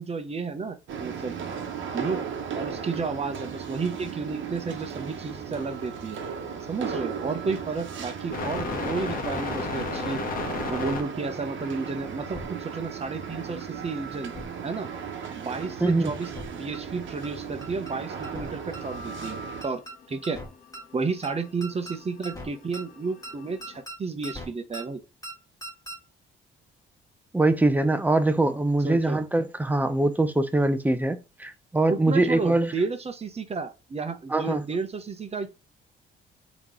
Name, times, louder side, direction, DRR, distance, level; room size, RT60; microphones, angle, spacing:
voice 1, 0.0-1.3 1.9-2.2 2.5-6.2 6.7-10.2 10.7-14.3 14.6-14.9 15.4-19.8 20.1-20.4 20.9-25.0 28.8-29.2 31.9-35.5, right 4 dB, 30° right, 0.8 m, -32 dB
sound 1, 0.9-19.6, right 6 dB, 70° right, 1.0 m, -36 dB
sound 2, 8.3-11.0 14.5-14.6 14.9-15.0 15.1-16.4 16.7-23.8, left 4 dB, 45° left, 1.0 m, -35 dB
sound 3, 10.4-10.5 10.7-10.8 11.2-11.3 11.6-11.9 12.2-12.5 12.7-12.8 13.2-13.3 13.6-13.9 14.2-14.5 14.7-14.8 15.2-15.3 15.6-15.9 16.2-16.5 16.7-16.8 17.2-17.3 17.6-17.9 18.2-18.5 18.7-18.8 19.2-19.3 19.6-19.9 20.2-20.5 20.7-20.8 21.2-21.3 21.6-22.0 22.2-22.5 22.7-22.8 23.2-23.3 23.6-24.0 24.2-24.5 24.7-24.8 25.2-25.3 25.6-26.0, right 1 dB, 15° left, 1.8 m, -40 dB
voice 2, 15.8-16.1 27.3-32.7 34.3-34.6, right 2 dB, 10° right, 0.6 m, -23 dB
3.6 x 3.0 x 3.7 m
cardioid pair, 90°, 20 cm